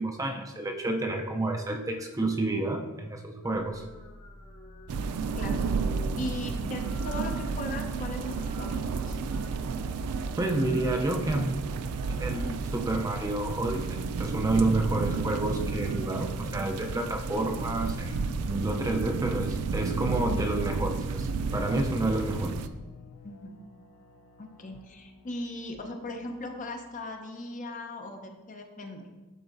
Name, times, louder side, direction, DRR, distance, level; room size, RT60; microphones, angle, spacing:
voice 1, 0.0-3.9 10.4-11.9 12.2-18.2 18.4-22.5, right 2 dB, 15° right, 2 dB, 0.4 m, -29 dB
sound 1, 3.4-20.9, equal, 80° left, 1.6 m, -50 dB
sound 2, 4.9-22.7, right 5 dB, 80° right, 0.4 m, -32 dB
voice 2, 5.3-5.7 6.2-9.2 23.2-23.6 24.4-29.1, left 2 dB, 35° left, 3 dB, 0.7 m, -38 dB
sound 3, 12.1-27.1, left 5 dB, 65° left, 0.4 m, -49 dB
11.5 x 4.0 x 2.6 m, 1.2 s
head